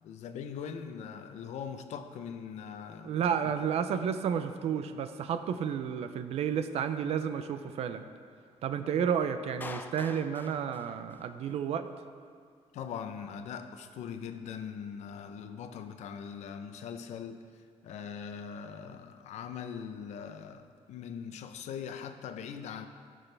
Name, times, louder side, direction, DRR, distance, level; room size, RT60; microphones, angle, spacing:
voice 1, 0.0-3.2 3.4-3.5 3.9-4.1 12.7-17.4 17.8-22.9, left 7 dB, 75° left, 0.6 m, -41 dB
voice 2, 3.0-8.0 8.6-11.9, right 8 dB, 60° right, 0.5 m, -31 dB
Clapping, 9.6-11.6, left 3 dB, 15° left, 0.3 m, -45 dB
16.5 x 6.2 x 3.3 m
cardioid pair, 170°, 12 cm